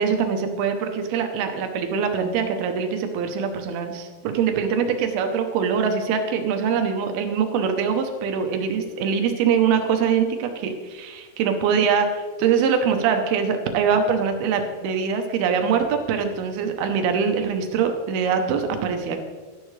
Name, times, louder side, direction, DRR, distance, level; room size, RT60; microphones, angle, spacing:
voice 1, 0.0-12.1 12.4-19.2, right 6 dB, 75° right, 6 dB, 2.6 m, -23 dB
12.5 x 10.0 x 3.2 m, 1.4 s
omnidirectional pair, 4.9 m